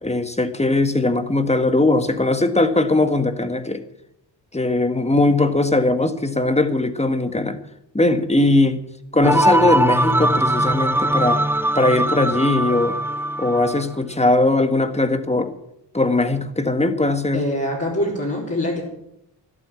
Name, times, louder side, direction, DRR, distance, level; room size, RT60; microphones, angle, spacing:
voice 1, 0.0-3.8 4.5-7.6 7.9-8.8 9.1-11.4 11.7-13.0 13.4-15.5 15.9-17.4, left 2 dB, 15° left, 9 dB, 1.7 m, -19 dB
sound 1, 9.2-13.8, right 1 dB, 5° right, 0.7 m, -20 dB
voice 2, 17.3-18.8, left 1 dB, 35° left, -5 dB, 4.2 m, -24 dB
12.5 x 12.0 x 8.5 m, 0.82 s
cardioid pair, 75°, 43 cm